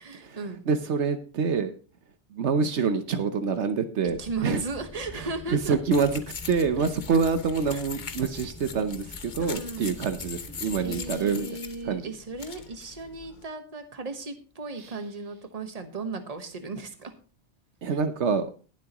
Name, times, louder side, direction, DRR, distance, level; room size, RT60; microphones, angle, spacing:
voice 1, 0.0-0.7 4.2-5.8 7.7-7.8 9.4-10.0 10.8-17.1 17.9-18.0, right 3 dB, 35° right, 7 dB, 1.3 m, -36 dB
voice 2, 0.7-1.7 2.3-4.6 5.5-6.2 6.5-11.5 11.8-12.1 14.8-14.9 17.8-18.5, right 5 dB, 75° right, 9 dB, 1.2 m, -26 dB
sound 1, 4.0-11.1, left 2 dB, 20° left, 2.1 m, -45 dB
sound 2, 5.9-13.4, left 5 dB, 45° left, 1.0 m, -41 dB
19.5 x 7.4 x 3.0 m, 0.36 s
omnidirectional pair, 1.2 m